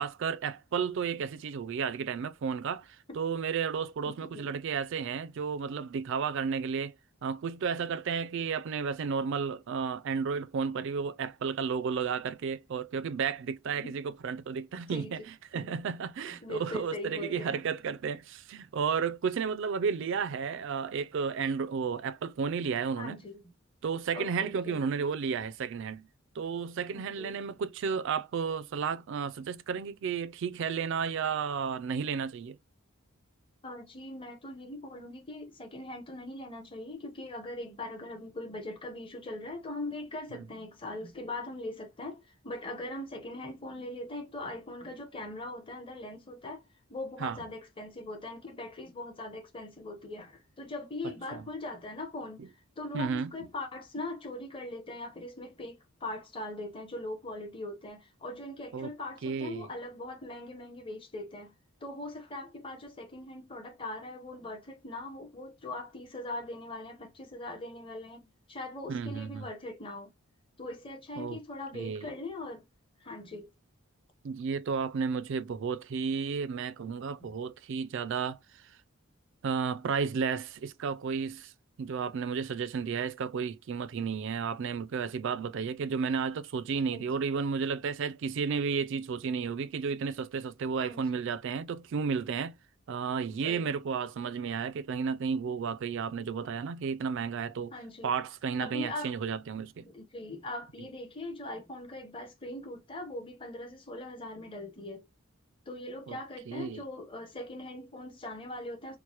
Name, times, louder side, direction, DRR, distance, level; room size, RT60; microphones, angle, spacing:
voice 1, 0.0-6.9 7.2-23.2 23.8-26.1 26.4-32.6 40.3-40.5 47.2-47.4 51.0-51.5 52.4-52.5 52.9-53.3 58.7-58.9 59.2-59.7 68.9-69.5 71.2-71.4 71.7-72.1 74.2-78.8 79.4-81.5 81.8-92.5 92.9-97.7 98.0-99.9 100.8-100.9 106.1-106.2 106.5-106.8, right 6 dB, 60° right, 0.4 m, -32 dB
voice 2, 4.0-4.5 13.8-14.0 14.9-15.1 15.6-15.7 16.3-17.6 23.0-23.4 24.1-24.8 26.9-27.4 33.6-61.5 61.8-70.1 70.6-72.6 73.0-73.5 77.2-77.3 86.9-87.1 90.8-91.3 93.3-93.7 97.7-98.1 98.6-99.1 99.8-105.1 105.7-109.0, left 2 dB, 25° left, 0.9 m, -41 dB
4.5 x 2.1 x 2.9 m
head